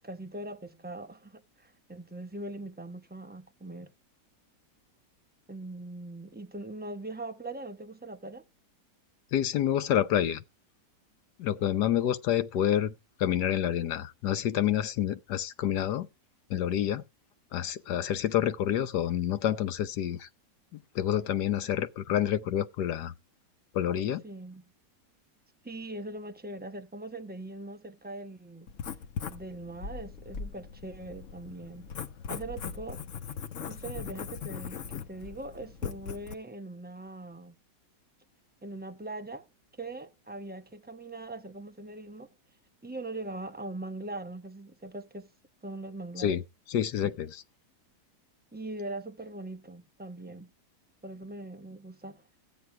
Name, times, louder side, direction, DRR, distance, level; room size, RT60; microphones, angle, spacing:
voice 1, 0.0-3.9 5.5-8.5 24.2-24.6 25.6-28.7 29.3-31.9 32.3-33.0 33.7-37.5 38.6-39.5 39.8-42.3 42.8-45.3 45.6-46.4 48.5-50.5 51.0-52.2, right 2 dB, 15° right, 0.3 m, -41 dB
voice 2, 9.3-10.4 11.4-12.9 13.2-16.1 16.5-17.0 17.5-20.3 20.9-23.1 23.7-24.2 46.2-46.4 46.7-47.4, left 10 dB, 75° left, 1.4 m, -28 dB
Writing, 28.7-36.3, left 7 dB, 55° left, 1.1 m, -40 dB
14.5 x 9.2 x 4.7 m
omnidirectional pair, 1.9 m